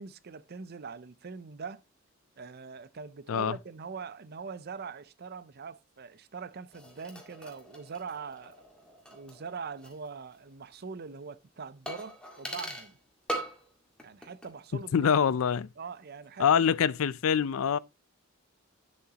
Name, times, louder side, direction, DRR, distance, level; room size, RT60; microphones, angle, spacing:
voice 1, 0.0-1.8 2.4-8.6 9.1-13.0 14.0-15.2 15.8-16.5, right 5 dB, 50° right, 0.6 m, -42 dB
sound 1, 6.7-10.1 10.3-10.4 11.9-12.9 13.3-13.7 14.0-14.5 14.8-14.9, right 1 dB, 5° left, 1.8 m, -41 dB
voice 2, 14.9-15.7 16.4-17.8, left 7 dB, 80° left, 0.4 m, -25 dB
8.6 x 7.6 x 2.9 m
head